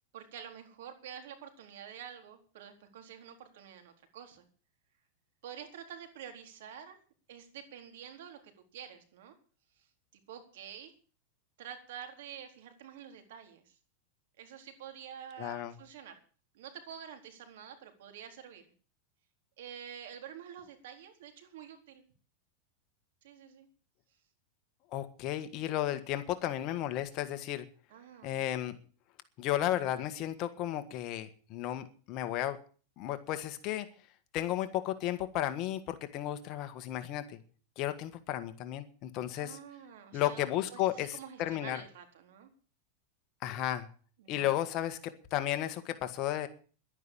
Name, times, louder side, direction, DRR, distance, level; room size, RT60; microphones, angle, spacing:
voice 1, 0.1-4.5 5.4-7.0 7.3-8.4 8.7-9.4 10.3-10.9 11.6-13.7 14.4-16.2 16.5-18.6 19.6-22.0 23.2-23.7 27.9-28.4 39.3-42.5 44.2-44.5, right 8 dB, 70° right, 5 dB, 4.0 m, -48 dB
voice 2, 15.4-15.7 24.9-27.7 28.2-28.8 29.4-32.6 33.0-33.9 34.3-37.4 37.8-39.6 40.1-41.8 43.4-43.9 44.3-46.5, left 12 dB, 40° left, 9 dB, 1.6 m, -33 dB
11.5 x 10.0 x 8.7 m, 0.40 s
supercardioid pair, 145°, 0 cm